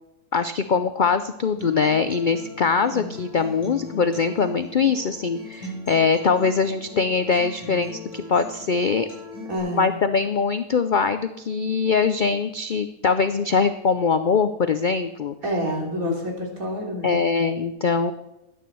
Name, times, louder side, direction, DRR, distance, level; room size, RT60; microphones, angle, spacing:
voice 1, 0.3-9.1 9.7-15.3 16.0-16.2 17.0-18.1, left 5 dB, 60° left, 10 dB, 0.5 m, -22 dB
Acoustic guitar, 1.6-9.6, left 2 dB, 20° right, 6.7 m, -39 dB
voice 2, 9.5-9.9 15.4-17.1, equal, 70° right, 0 dB, 3.6 m, -28 dB
12.5 x 9.6 x 6.9 m, 0.93 s
omnidirectional pair, 1.5 m